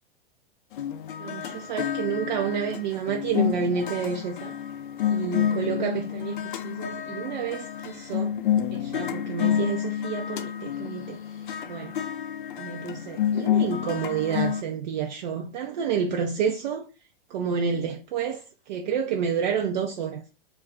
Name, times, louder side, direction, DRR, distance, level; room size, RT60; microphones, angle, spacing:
sound 1, 0.7-14.6, left 9 dB, 55° left, 0.5 m, -29 dB
voice 1, 1.2-4.6 5.1-8.3 8.7-11.2 11.6-12.0 12.6-16.9 17.3-20.3, right 7 dB, 45° right, 0.5 m, -29 dB
2.4 x 2.2 x 3.5 m
figure-of-eight pair, 100°, 30 cm